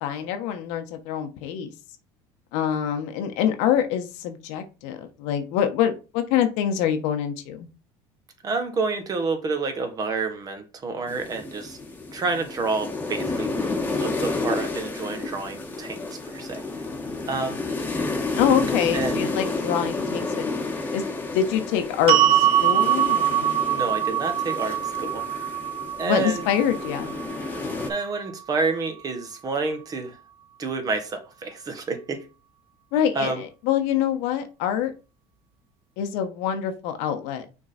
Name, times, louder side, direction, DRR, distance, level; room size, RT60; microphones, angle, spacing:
voice 1, 0.0-1.7 2.5-7.7 18.4-20.6 20.9-21.0 21.3-23.6 26.0-27.1 32.9-34.9 36.0-37.4, left 9 dB, 80° left, 1.2 m, -25 dB
voice 2, 8.4-11.8 12.1-16.6 17.3-17.6 18.9-19.2 23.7-25.4 26.0-26.4 27.9-30.2 30.6-32.2 33.1-33.4, right 4 dB, 35° right, 1.6 m, -29 dB
sound 1, 11.1-27.9, left 3 dB, 15° left, 1.4 m, -31 dB
sound 2, 22.1-28.3, right 11 dB, 55° right, 0.7 m, -23 dB
6.1 x 3.8 x 4.2 m
cardioid pair, 120°, 11 cm